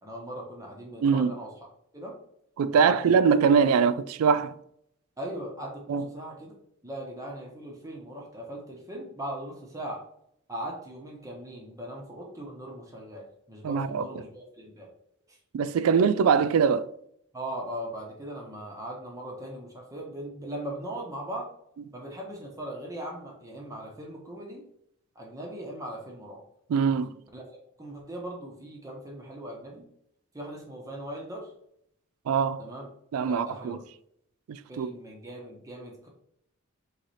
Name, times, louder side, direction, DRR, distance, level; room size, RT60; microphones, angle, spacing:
voice 1, 0.0-1.5 1.9-2.2 2.8-3.0 5.2-6.5 6.8-10.0 10.5-14.9 17.3-21.5 21.9-24.6 25.1-26.4 27.3-27.4 27.8-29.9 30.3-31.5 32.6-32.9 33.3-33.8 34.7-36.1, right 1 dB, 15° right, 0.9 m, -39 dB
voice 2, 1.0-1.3 2.6-4.5 5.9-6.1 13.6-14.2 15.5-16.9 26.7-27.1 32.3-32.6 33.1-33.8 34.5-34.9, right 6 dB, 85° right, 0.3 m, -23 dB
3.8 x 3.2 x 4.1 m
head